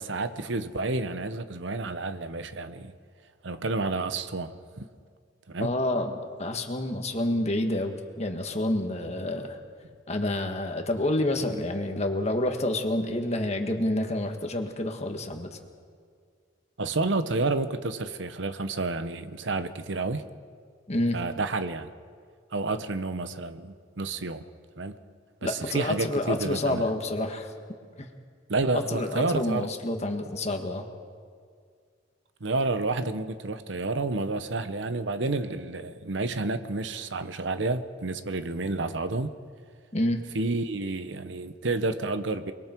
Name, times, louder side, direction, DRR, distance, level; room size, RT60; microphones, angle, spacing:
voice 1, 0.0-2.9 3.4-4.8 5.5-5.7 16.8-20.2 21.1-21.9 22.5-24.5 24.8-25.0 25.4-26.9 28.5-29.7 32.4-39.3 40.3-42.5, right 3 dB, 70° right, 0.9 m, -30 dB
voice 2, 5.6-9.6 10.1-15.6 20.9-21.2 25.4-27.5 28.0-28.1 28.7-30.9 39.9-40.2, left 1 dB, 35° left, 1.8 m, -28 dB
29.5 x 21.5 x 4.6 m
head